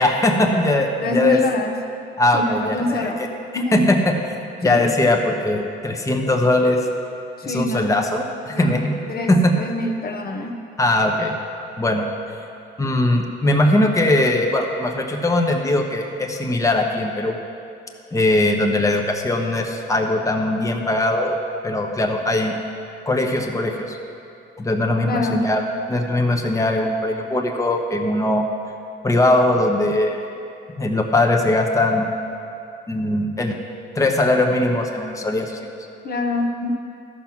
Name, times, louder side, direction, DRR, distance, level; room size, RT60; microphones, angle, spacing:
voice 1, 0.0-1.4 2.2-3.3 3.5-4.4 4.6-6.8 7.4-9.0 9.3-9.5 10.8-11.3 11.8-12.0 12.8-17.4 18.1-21.4 21.6-22.5 23.1-24.0 24.6-28.4 29.0-30.2 30.8-32.1 32.9-33.5 33.9-35.7, left 1 dB, 15° left, 2 dB, 0.9 m, -20 dB
voice 2, 1.0-1.8 2.3-3.2 3.5-3.9 4.6-4.8 7.4-7.9 8.5-8.8 9.1-10.5 25.0-25.5 36.0-36.7, left 1 dB, 50° left, 3 dB, 0.9 m, -25 dB
12.5 x 5.9 x 5.9 m, 2.6 s
cardioid pair, 90°, 20 cm